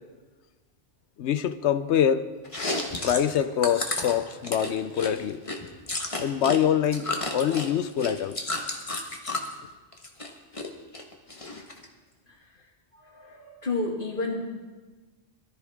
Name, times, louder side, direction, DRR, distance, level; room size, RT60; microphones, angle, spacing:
voice 1, 1.2-2.3 3.0-5.4 6.2-8.4, left 9 dB, 70° left, 1.0 m, -25 dB
Chewing mastication, 2.4-6.6 6.8-9.5 9.9-10.7 10.9-11.9, left 2 dB, 30° left, 1.4 m, -32 dB
voice 2, 12.9-14.4, left 3 dB, 45° left, 2.4 m, -31 dB
22.0 x 13.5 x 3.6 m
omnidirectional pair, 1.2 m